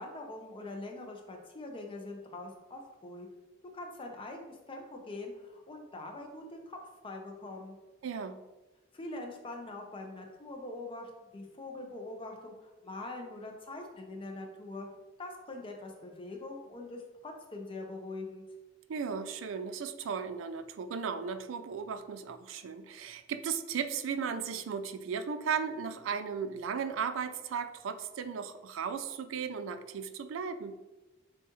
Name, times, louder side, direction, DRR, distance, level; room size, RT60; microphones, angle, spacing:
voice 1, 0.0-3.3 3.7-6.8 7.0-7.8 8.9-14.9 15.2-18.4, left 2 dB, 25° left, 2 dB, 0.6 m, -43 dB
voice 2, 8.0-8.4 18.9-30.7, right 6 dB, 80° right, 10 dB, 0.4 m, -36 dB
7.1 x 2.4 x 3.0 m, 1.1 s
head